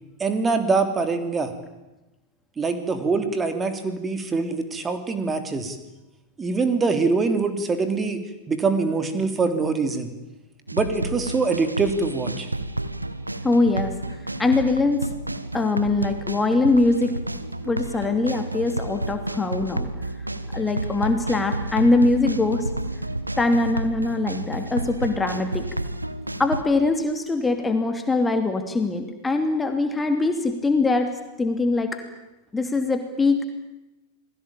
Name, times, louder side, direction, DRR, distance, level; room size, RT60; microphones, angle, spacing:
voice 1, 0.2-1.5 2.6-5.8 6.4-8.2 8.5-10.1 10.7-12.5, right 4 dB, 15° right, 8 dB, 3.3 m, -24 dB
sound 1, 10.7-26.6, right 1 dB, 85° right, 1.3 m, -30 dB
voice 2, 13.4-13.9 14.4-15.1 15.5-17.1 17.6-19.9 20.5-22.7 23.4-25.7 26.4-31.1 31.4-32.0 32.5-33.4, left 3 dB, 10° left, 6 dB, 2.7 m, -22 dB
29.0 x 21.0 x 8.9 m, 1.0 s
figure-of-eight pair, 90°, 0 cm